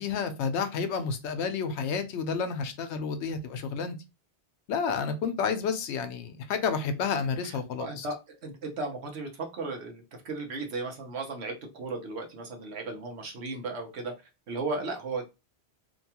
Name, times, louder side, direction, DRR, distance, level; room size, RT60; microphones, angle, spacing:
voice 1, 0.0-4.0 4.7-8.1, left 5 dB, 85° left, 0.9 m, -30 dB
voice 2, 7.4-14.1 14.5-15.3, right 3 dB, 75° right, 1.1 m, -35 dB
2.8 x 2.3 x 2.8 m
omnidirectional pair, 1.1 m